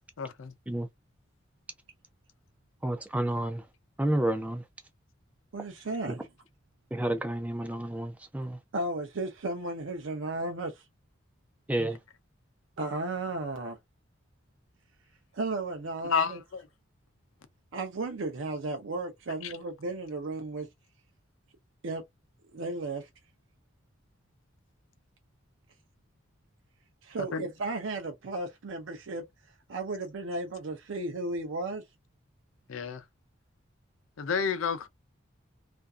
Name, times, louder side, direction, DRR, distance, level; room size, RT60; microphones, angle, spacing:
voice 1, 0.2-0.5 16.1-16.6 27.3-27.4 32.7-33.0 34.2-34.9, left 5 dB, 90° left, 0.5 m, -30 dB
voice 2, 2.8-3.6 4.0-4.6 6.9-8.6 11.7-12.0, right 1 dB, 5° right, 0.4 m, -30 dB
voice 3, 5.5-6.3 8.7-10.8 12.8-13.8 15.3-16.4 17.7-20.7 21.8-22.0 22.5-23.1 27.0-29.2 29.7-31.8, right 2 dB, 75° right, 0.5 m, -34 dB
2.5 x 2.3 x 2.4 m
head